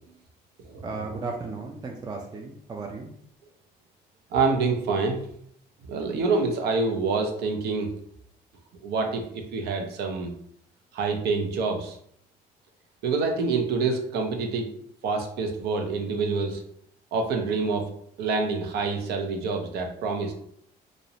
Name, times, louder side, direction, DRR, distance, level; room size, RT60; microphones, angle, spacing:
voice 1, 0.8-3.1, right 3 dB, 25° right, 2 dB, 0.3 m, -35 dB
voice 2, 4.3-5.2 5.9-7.9 8.8-10.3 10.9-12.0 13.0-14.7 15.0-16.6 17.1-17.9 18.2-20.3, right 4 dB, 75° right, 3 dB, 0.6 m, -26 dB
2.4 x 2.0 x 2.7 m, 0.67 s
cardioid pair, 110°, 17 cm